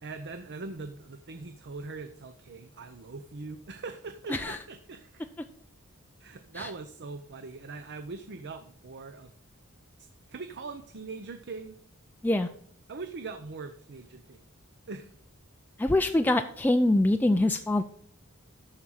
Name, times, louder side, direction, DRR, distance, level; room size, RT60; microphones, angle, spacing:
voice 1, 0.0-5.3 6.2-9.3 10.3-11.8 12.9-14.4 14.9-15.1, right 3 dB, 50° right, 8 dB, 0.7 m, -41 dB
voice 2, 15.8-17.8, left 1 dB, 10° left, 6 dB, 0.4 m, -24 dB
13.0 x 4.9 x 5.7 m, 0.63 s
head